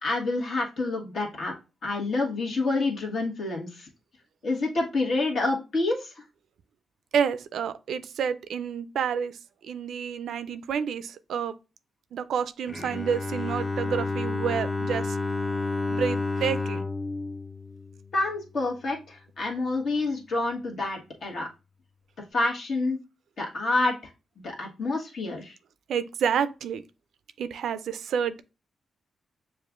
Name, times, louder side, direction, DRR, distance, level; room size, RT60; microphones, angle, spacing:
voice 1, 0.0-1.5 1.8-3.9 4.4-6.2 18.1-21.5 22.3-23.0 23.4-23.9 24.4-25.6, left 2 dB, 65° left, 1.3 m, -28 dB
voice 2, 7.1-9.3 9.6-11.5 12.1-15.2 15.9-16.8 25.9-26.8 27.4-28.4, right 7 dB, 80° right, 0.3 m, -29 dB
Bowed string instrument, 12.7-18.6, left 3 dB, 30° left, 0.6 m, -31 dB
6.5 x 2.4 x 2.3 m
cardioid pair, 60°, 0 cm